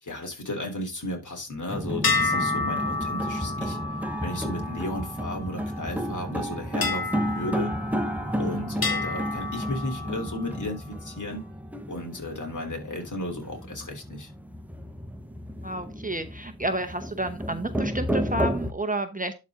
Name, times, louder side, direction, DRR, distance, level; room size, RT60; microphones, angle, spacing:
voice 1, 0.0-3.8 4.2-7.7 8.4-11.4 11.9-14.3, left 1 dB, 50° left, 2 dB, 3.2 m, -34 dB
sound 1, 1.7-18.7, equal, 5° right, 0.9 m, -32 dB
sound 2, 2.0-5.7 6.8-8.4 8.8-10.5, left 4 dB, 65° left, 1.9 m, -30 dB
voice 2, 15.6-19.3, right 1 dB, 20° right, 7 dB, 0.8 m, -30 dB
11.5 x 4.2 x 3.6 m, 0.26 s
wide cardioid pair, 85°, 38 cm